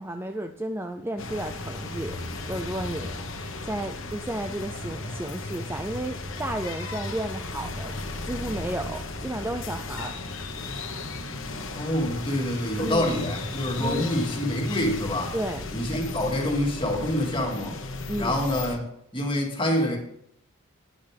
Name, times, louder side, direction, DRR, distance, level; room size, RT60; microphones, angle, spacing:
voice 1, 0.0-2.2 2.5-3.2 3.6-7.9 8.2-10.1 12.8-13.1 13.8-14.1 15.3-15.6 18.1-18.4, right 1 dB, 10° right, 6 dB, 0.4 m, -32 dB
sound 1, 1.2-18.8, left 2 dB, 60° left, 1.3 m, -35 dB
voice 2, 11.7-15.3 15.7-17.8 18.2-18.8 19.1-20.0, left 1 dB, 25° left, 1 dB, 2.1 m, -26 dB
12.0 x 9.7 x 3.4 m, 0.75 s
head